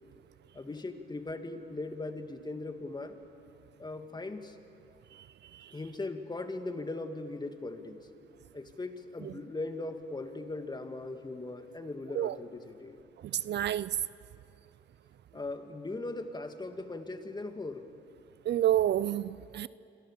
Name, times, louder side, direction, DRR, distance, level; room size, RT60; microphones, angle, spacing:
voice 1, 0.5-3.2 3.8-4.6 5.7-8.1 8.5-13.0 15.3-17.9, left 2 dB, 20° left, 7 dB, 2.1 m, -39 dB
voice 2, 5.1-5.8 9.2-9.3 12.1-12.4 13.2-14.0 18.4-19.7, right 12 dB, 60° right, 19 dB, 0.5 m, -30 dB
27.5 x 24.0 x 7.3 m, 2.6 s
cardioid pair, 90°, 20 cm